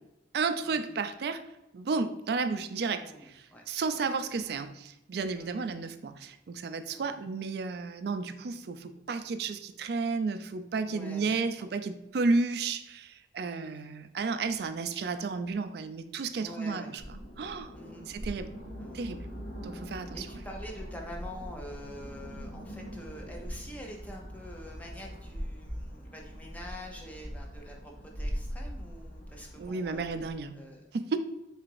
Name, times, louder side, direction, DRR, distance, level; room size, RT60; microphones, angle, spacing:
voice 1, 0.3-1.4 1.7-17.0 17.4-17.7 18.1-18.5 18.9-19.3 19.6-20.3 29.6-30.5 30.9-31.2, right 4 dB, 60° right, 9 dB, 0.4 m, -32 dB
voice 2, 2.9-3.6 3.9-4.1 5.3-5.7 6.9-7.1 10.9-11.4 13.4-13.8 16.4-16.9 17.7-18.1 18.8-19.1 20.1-30.1 30.5-30.9, equal, 10° left, 0 dB, 0.6 m, -46 dB
sound 1, 17.0-30.4, equal, 75° left, 1.3 m, -41 dB
3.9 x 2.5 x 4.6 m, 0.91 s
head